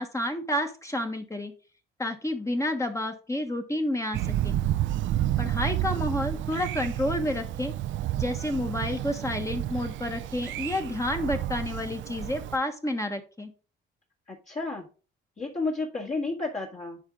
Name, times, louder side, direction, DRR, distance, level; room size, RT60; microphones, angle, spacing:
voice 1, 0.0-1.5 2.0-4.6 5.4-7.7 8.2-13.5, left 1 dB, 15° left, 5 dB, 1.2 m, -30 dB
Thunder, 4.1-12.6, right 13 dB, 75° right, 0.5 m, -30 dB
voice 2, 14.3-14.8 15.4-17.0, left 3 dB, 35° left, -3 dB, 1.8 m, -31 dB
10.5 x 3.7 x 3.6 m, 0.36 s
cardioid pair, 90°, 20 cm